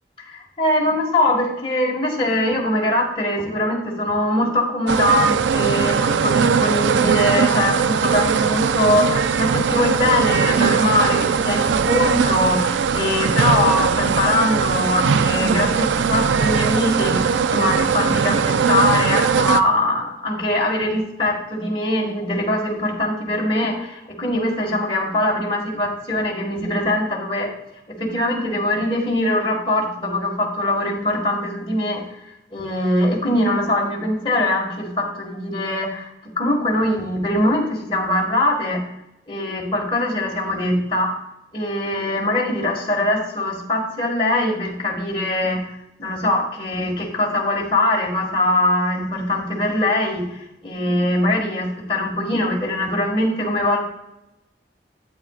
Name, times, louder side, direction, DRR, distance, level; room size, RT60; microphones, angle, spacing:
voice 1, 0.3-27.5 27.9-32.0 32.5-38.8 39.3-41.1 41.5-45.7 46.0-53.8, left 1 dB, 30° left, -3 dB, 1.9 m, -22 dB
sound 1, 4.9-19.6, right 6 dB, 90° right, 0.4 m, -20 dB
12.5 x 8.4 x 2.5 m, 0.87 s
head